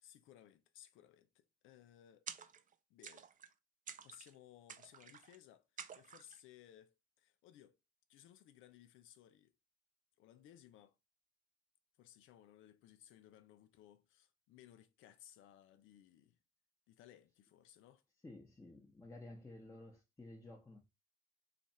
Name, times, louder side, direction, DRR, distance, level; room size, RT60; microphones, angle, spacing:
voice 1, 0.0-2.3 2.9-3.3 4.0-7.8 8.1-9.5 10.2-11.0 12.0-16.4 16.9-18.0, left 11 dB, 90° left, 0.5 m, -61 dB
Short Splashes, 2.3-2.7 3.0-3.5 3.9-4.3 4.7-5.4 5.8-6.4, right 7 dB, 40° right, 0.5 m, -51 dB
voice 2, 18.2-20.8, left 2 dB, 15° left, 0.9 m, -53 dB
3.3 x 2.4 x 4.1 m
cardioid pair, 90°, 20 cm